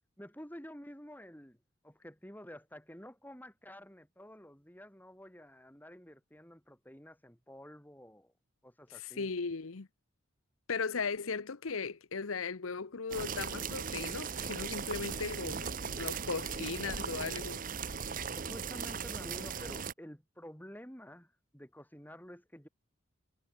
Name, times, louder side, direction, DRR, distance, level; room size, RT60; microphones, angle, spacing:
voice 1, 0.2-1.6 1.8-8.3 8.6-9.3 18.3-22.7, equal, 10° left, 5.9 m, -50 dB
voice 2, 8.9-9.9 10.7-17.6, left 5 dB, 85° left, 0.9 m, -37 dB
sound 1, 13.1-19.9, right 6 dB, 40° right, 0.8 m, -38 dB
head